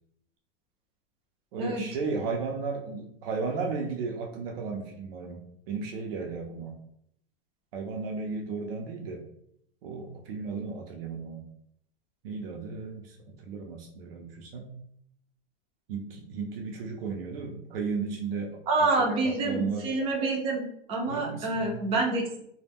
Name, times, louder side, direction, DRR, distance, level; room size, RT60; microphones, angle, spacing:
voice 1, 1.5-6.8 7.7-9.2 9.8-11.5 12.2-14.8 15.9-18.6 19.2-19.9 21.1-21.8, right 4 dB, 75° right, 1 dB, 0.6 m, -34 dB
voice 2, 18.7-22.4, right 3 dB, 20° right, 1 dB, 0.4 m, -27 dB
2.1 x 2.1 x 3.4 m, 0.74 s
supercardioid pair, 150°, 29 cm